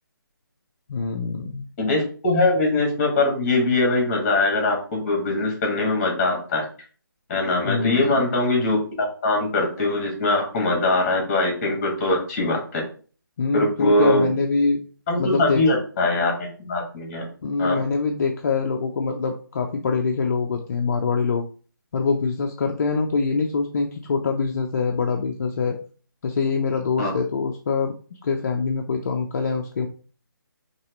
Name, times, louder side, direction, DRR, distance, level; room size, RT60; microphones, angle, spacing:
voice 1, 0.9-1.6 7.7-8.3 13.4-14.8 15.2-15.6 17.4-21.4 21.9-25.8 26.2-27.9 28.2-29.9, left 4 dB, 45° left, 2 dB, 0.6 m, -24 dB
voice 2, 1.8-6.6 7.3-12.8 13.5-14.3 15.1-17.3 17.6-17.8 27.0-27.1, left 2 dB, 20° left, 1 dB, 1.8 m, -22 dB
5.6 x 3.0 x 3.1 m, 0.40 s
figure-of-eight pair, 155°, 12 cm